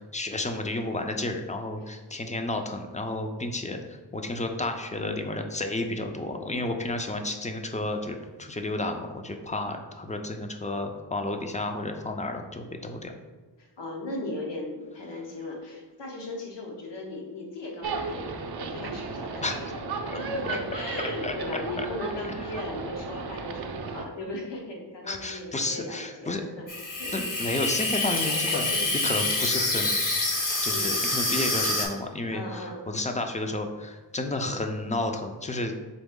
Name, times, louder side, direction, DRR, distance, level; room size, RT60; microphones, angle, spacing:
voice 1, 0.0-13.1 19.4-19.6 20.1-20.2 20.5-20.6 21.2-21.9 25.0-26.4 27.1-30.0 30.6-35.7, left 2 dB, 20° left, 5 dB, 0.3 m, -31 dB
voice 2, 13.6-19.7 20.1-26.7 27.0-27.1 28.7-28.9 30.7-31.0 32.3-32.8 34.4-34.6, left 2 dB, 75° left, 0 dB, 1.0 m, -37 dB
sound 1, 17.8-24.0, right 4 dB, 65° right, 0.5 m, -34 dB
Water tap faucet / Sink (filling or washing), 26.7-31.9, left 2 dB, 50° left, 0.8 m, -27 dB
4.0 x 3.4 x 3.6 m, 1.3 s
wide cardioid pair, 110°, 43 cm